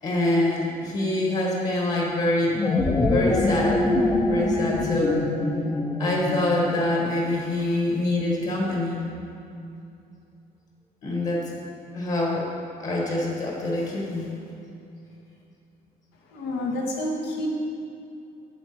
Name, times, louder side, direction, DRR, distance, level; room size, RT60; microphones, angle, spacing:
voice 1, 0.0-2.6 3.0-3.8 4.2-5.2 6.0-9.0 11.0-11.5 11.9-12.5 12.8-14.3, left 1 dB, 45° left, -2 dB, 1.6 m, -25 dB
sound 1, 2.4-7.0, left 2 dB, 20° left, 0.6 m, -24 dB
voice 2, 16.3-17.5, left 1 dB, 85° left, -1 dB, 1.5 m, -29 dB
8.2 x 7.1 x 4.4 m, 2.6 s
cardioid pair, 110°, 17 cm